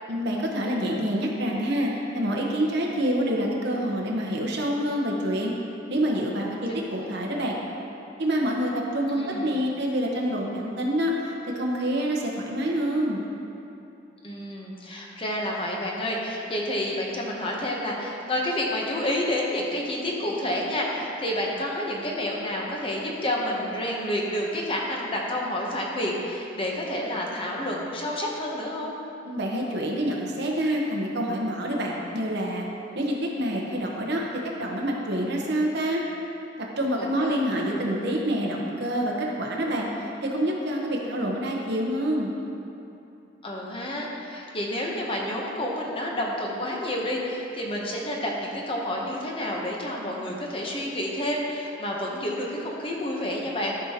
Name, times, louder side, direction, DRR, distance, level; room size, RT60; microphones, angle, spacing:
voice 1, 0.1-5.5 5.9-7.6 8.2-13.3 29.2-32.7 32.9-34.2 34.6-36.0 36.8-42.3, equal, 60° right, -1 dB, 1.0 m, -27 dB
voice 2, 9.1-9.6 14.2-28.9 37.0-37.5 43.4-53.7, left 1 dB, 30° left, -2 dB, 0.9 m, -29 dB
13.0 x 5.1 x 2.9 m, 2.8 s
head